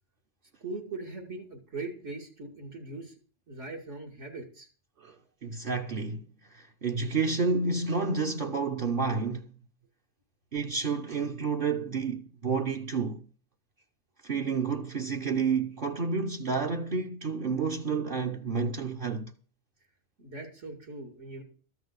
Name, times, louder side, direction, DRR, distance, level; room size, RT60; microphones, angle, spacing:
voice 1, 0.6-3.1 3.5-4.7 20.2-21.4, right 3 dB, 85° right, 2.6 m, -40 dB
voice 2, 5.0-9.5 10.5-13.3 14.2-19.3, right 4 dB, 55° right, 0.9 m, -30 dB
13.5 x 5.9 x 8.0 m
omnidirectional pair, 1.2 m